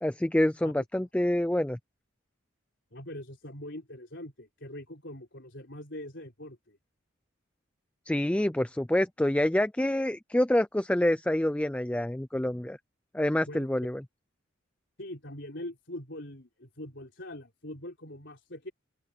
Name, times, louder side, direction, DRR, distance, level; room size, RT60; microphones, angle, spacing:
voice 1, 0.0-1.8 8.1-12.8 13.1-14.0, left 1 dB, 5° left, 0.4 m, -27 dB
voice 2, 2.9-6.8 13.5-13.7 15.0-18.7, left 1 dB, 60° left, 4.9 m, -42 dB
head